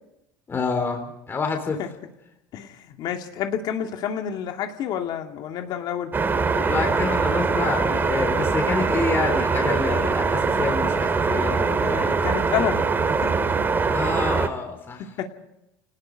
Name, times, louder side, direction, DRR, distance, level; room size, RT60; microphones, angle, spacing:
voice 1, 0.5-1.8 6.5-12.2 13.9-15.0, left 4 dB, 30° left, 4 dB, 3.7 m, -28 dB
voice 2, 2.5-6.1 9.9-10.2 11.8-13.3 15.2-15.3, left 9 dB, 60° left, 4 dB, 2.4 m, -29 dB
sound 1, 6.1-14.5, right 4 dB, 25° right, 2.6 m, -22 dB
28.5 x 19.0 x 5.3 m, 0.85 s
supercardioid pair, 115°, 8 cm